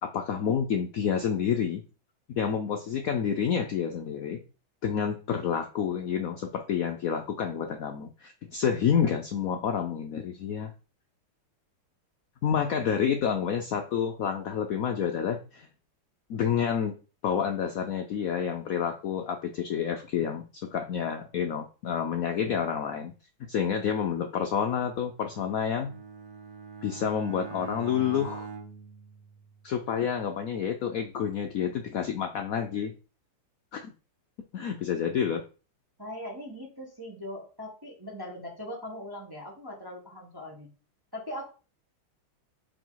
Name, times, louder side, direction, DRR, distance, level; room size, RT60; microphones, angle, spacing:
voice 1, 0.0-1.8 2.3-4.4 4.8-10.7 12.4-15.7 16.3-17.0 17.2-23.1 23.5-25.9 26.8-28.5 29.6-32.9 33.7-33.9 34.5-35.4, left 7 dB, 85° left, 5 dB, 0.7 m, -29 dB
Bowed string instrument, 25.2-29.9, right 5 dB, 60° right, 1.1 m, -43 dB
voice 2, 36.0-40.7 41.1-41.5, left 1 dB, 15° right, -2 dB, 1.2 m, -40 dB
5.0 x 4.9 x 3.9 m, 0.34 s
omnidirectional pair, 2.2 m